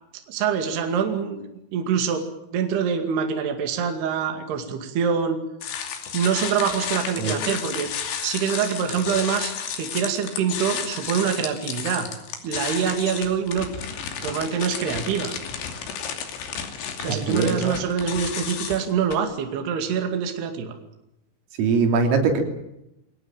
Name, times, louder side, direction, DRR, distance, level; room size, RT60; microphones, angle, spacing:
voice 1, 0.3-1.4 1.7-2.2 2.5-5.4 6.1-7.9 8.2-12.1 12.4-13.7 14.2-15.3 17.0-20.7, right 7 dB, 60° right, 5 dB, 4.0 m, -25 dB
sound 1, 5.6-19.2, left 7 dB, 65° left, 4.8 m, -32 dB
voice 2, 17.1-17.8 21.6-22.4, right 4 dB, 85° right, 4 dB, 5.8 m, -22 dB
25.0 x 18.5 x 9.0 m, 0.85 s
omnidirectional pair, 5.8 m